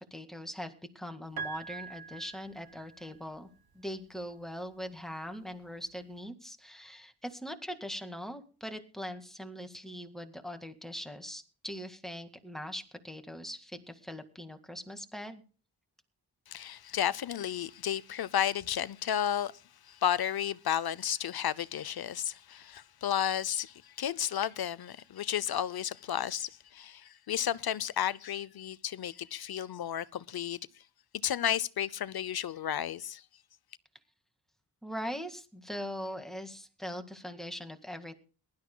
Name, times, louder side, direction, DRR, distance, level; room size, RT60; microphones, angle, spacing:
voice 1, 0.0-3.5 3.7-15.4 34.8-38.2, equal, ahead, 1.9 m, -41 dB
Piano, 1.4-3.4 4.6-4.7, right 5 dB, 65° right, 1.4 m, -43 dB
voice 2, 16.5-19.5 19.8-30.6 31.2-33.2, left 10 dB, 65° left, 0.7 m, -32 dB
22.0 x 12.0 x 2.2 m
wide cardioid pair, 110°, 40 cm